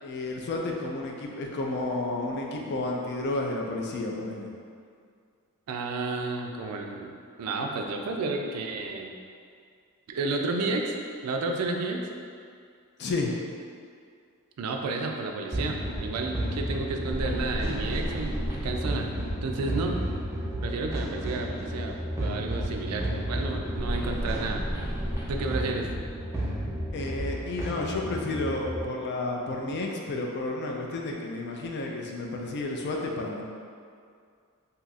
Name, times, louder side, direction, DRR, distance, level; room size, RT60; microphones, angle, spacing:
voice 1, 0.0-4.5 13.0-13.3 26.9-33.5, left 2 dB, 50° left, 0 dB, 0.4 m, -31 dB
voice 2, 5.7-9.1 10.1-10.9 11.2-12.1 14.6-19.1 19.4-20.0 20.6-24.6 25.3-25.9, right 3 dB, 80° right, 3 dB, 0.4 m, -31 dB
sound 1, 15.5-28.8, equal, 10° right, 0.5 m, -32 dB
2.7 x 2.4 x 4.0 m, 2.2 s
head